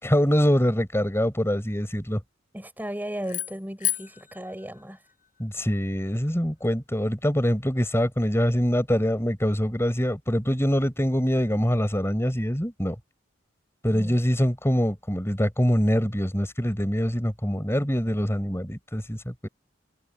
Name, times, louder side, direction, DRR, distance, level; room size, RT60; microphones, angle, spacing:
voice 1, 0.0-2.2 5.4-13.0 13.8-19.5, equal, 15° left, 5.7 m, -24 dB
voice 2, 2.5-5.0 13.9-14.2, equal, 10° right, 6.8 m, -35 dB
sound 1, 3.2-5.6, left 13 dB, 45° left, 7.5 m, -33 dB
head